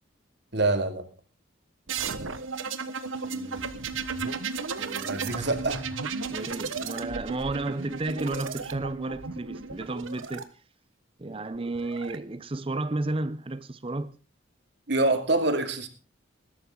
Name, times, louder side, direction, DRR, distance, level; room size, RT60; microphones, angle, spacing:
voice 1, 0.5-1.1 5.1-5.8 14.9-15.9, right 2 dB, 60° right, 2.5 m, -25 dB
sound 1, 1.9-10.4 11.5-12.2, right 5 dB, 90° right, 1.4 m, -34 dB
voice 2, 3.2-3.7 4.7-5.5 6.3-10.5 11.2-14.1, right 2 dB, 30° right, 0.6 m, -33 dB
20.5 x 12.5 x 3.8 m
head